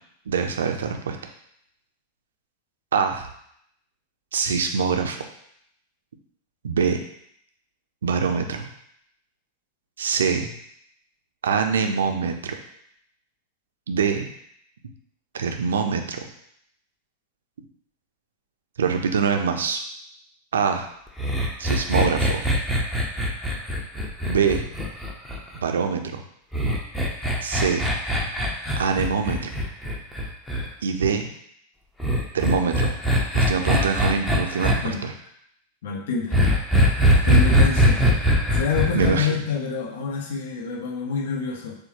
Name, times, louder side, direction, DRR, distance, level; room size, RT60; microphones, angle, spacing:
voice 1, 0.3-1.2 2.9-3.3 4.3-5.2 6.6-7.0 8.0-8.7 10.0-10.5 11.4-12.5 13.9-14.3 15.3-16.2 18.8-19.8 20.5-20.9 21.6-22.4 24.3-24.7 25.6-26.2 27.4-27.9 28.8-29.5 30.8-31.3 32.3-32.9 33.3-35.1 38.9-39.4, right 6 dB, 65° right, 5 dB, 0.5 m, -24 dB
sound 1, 21.2-25.6 26.5-30.7 32.0-34.7 36.3-39.1, equal, 5° left, 0.7 m, -21 dB
voice 2, 35.8-36.4 37.2-38.0 38.5-41.8, left 5 dB, 60° left, 0 dB, 0.9 m, -27 dB
6.5 x 2.2 x 3.2 m, 0.71 s
figure-of-eight pair, 90°, 0 cm